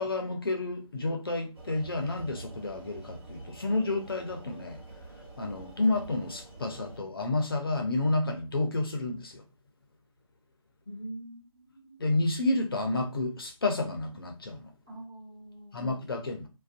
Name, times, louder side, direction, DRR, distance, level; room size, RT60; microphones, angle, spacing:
voice 1, 0.0-4.8 5.4-9.4 12.0-14.7 15.7-16.5, left 2 dB, 40° left, 0.5 m, -30 dB
sound 1, 1.5-7.0, right 2 dB, 40° right, 0.9 m, -47 dB
voice 2, 10.8-12.0 14.9-15.9, right 1 dB, 5° right, 0.4 m, -44 dB
2.5 x 2.1 x 2.5 m
figure-of-eight pair, 165°, 18 cm